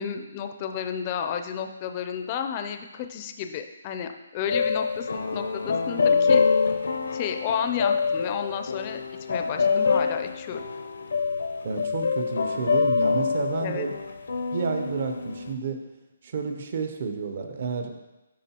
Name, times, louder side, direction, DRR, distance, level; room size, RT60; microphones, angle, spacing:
voice 1, 0.0-6.5 7.1-9.0 9.3-10.6 13.6-13.9, left 8 dB, 25° left, 6 dB, 0.4 m, -32 dB
sound 1, 4.5-15.5, left 5 dB, 80° left, 0.6 m, -25 dB
voice 2, 11.6-14.0 14.5-15.9 16.2-17.9, right 4 dB, 50° right, 6 dB, 0.7 m, -30 dB
11.0 x 3.9 x 2.9 m, 1.0 s
hypercardioid pair, 165°, 0 cm